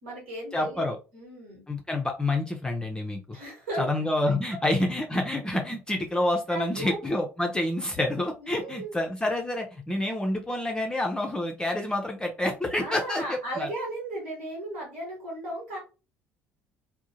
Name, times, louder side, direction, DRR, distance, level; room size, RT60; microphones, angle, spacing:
voice 1, 0.0-1.6 3.3-3.8 6.5-7.0 8.4-8.9 12.7-15.8, right 1 dB, 70° right, -2 dB, 1.2 m, -35 dB
voice 2, 0.5-1.0 1.7-3.2 3.8-13.7, left 1 dB, 10° left, 2 dB, 0.5 m, -28 dB
2.6 x 2.1 x 2.7 m, 0.31 s
figure-of-eight pair, 55°, 7 cm